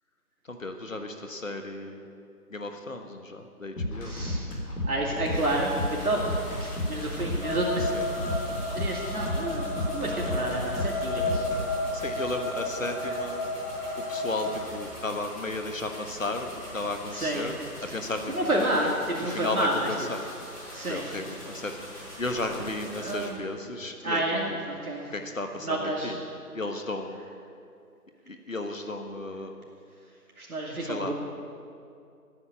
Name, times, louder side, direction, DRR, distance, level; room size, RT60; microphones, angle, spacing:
voice 1, 0.5-2.0 2.5-4.1 7.8-8.0 11.1-11.2 11.9-13.4 14.1-17.6 17.9-18.5 18.8-18.9 19.2-20.2 20.8-21.7 22.2-24.2 24.5-24.6 25.1-26.2 26.5-27.2 28.3-29.6 30.8-31.1, left 2 dB, 55° left, 5 dB, 1.4 m, -34 dB
sound 1, 3.8-11.6, left 1 dB, 75° left, 3.6 m, -32 dB
voice 2, 4.0-4.4 4.8-6.2 6.6-7.8 8.7-11.4 17.1-17.5 18.3-18.9 19.2-19.7 20.7-21.1 23.0-23.4 24.0-25.0 25.6-26.1 30.4-31.1, right 1 dB, 65° right, -3 dB, 2.5 m, -29 dB
sound 2, 5.3-23.2, equal, 15° left, 4.6 m, -44 dB
sound 3, 7.4-14.6, left 2 dB, 40° left, 2.5 m, -32 dB
14.5 x 9.6 x 8.9 m, 2.5 s
figure-of-eight pair, 175°, 47 cm